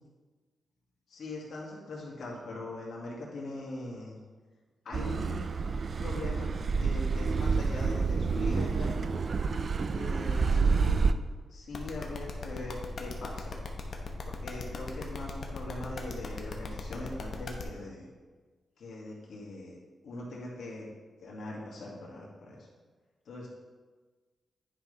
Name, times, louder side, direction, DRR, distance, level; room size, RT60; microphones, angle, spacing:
voice 1, 1.1-4.2 4.8-5.6 6.0-9.0 9.9-11.1 11.5-13.5 14.2-18.1 18.8-19.8 20.0-20.9 21.2-22.7 23.3-23.5, left 2 dB, 70° left, -4 dB, 2.1 m, -41 dB
Car passing by / Accelerating revving vroom, 4.9-11.1, right 4 dB, 45° right, 0.3 m, -28 dB
sound 1, 11.7-17.6, left 5 dB, 55° left, 1.0 m, -38 dB
10.0 x 5.5 x 3.3 m, 1.4 s
wide cardioid pair, 115°, 0 cm